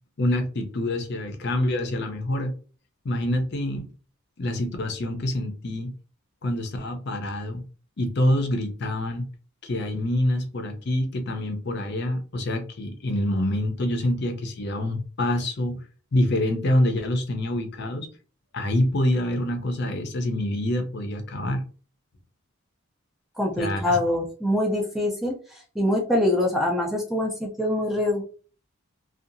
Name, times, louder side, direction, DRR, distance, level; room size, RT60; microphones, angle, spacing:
voice 1, 0.2-2.5 3.0-3.9 4.4-5.9 6.4-7.6 8.0-9.2 9.6-15.8 16.1-18.1 18.5-21.6 23.6-24.0, left 1 dB, 50° left, 5 dB, 0.6 m, -26 dB
voice 2, 23.4-28.2, left 1 dB, ahead, -1 dB, 0.4 m, -24 dB
2.7 x 2.3 x 2.5 m, 0.39 s
head